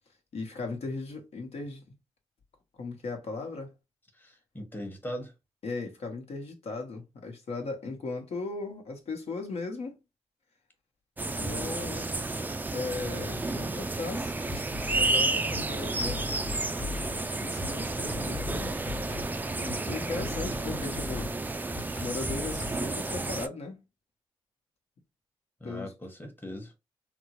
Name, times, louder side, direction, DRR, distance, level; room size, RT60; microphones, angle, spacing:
voice 1, 0.3-1.8 2.8-3.7 5.6-10.0 11.3-12.2 12.7-14.3 14.9-16.3 17.2-18.8 19.4-21.3 22.0-23.8 25.6-25.9, left 3 dB, 65° left, 1.1 m, -37 dB
voice 2, 4.1-5.3 25.6-26.7, equal, 15° left, 1.1 m, -40 dB
sound 1, 11.2-23.5, right 2 dB, 15° right, 0.4 m, -31 dB
sound 2, 14.5-22.7, left 4 dB, 50° left, 1.3 m, -40 dB
3.4 x 2.0 x 2.9 m
supercardioid pair, 55°, 11 cm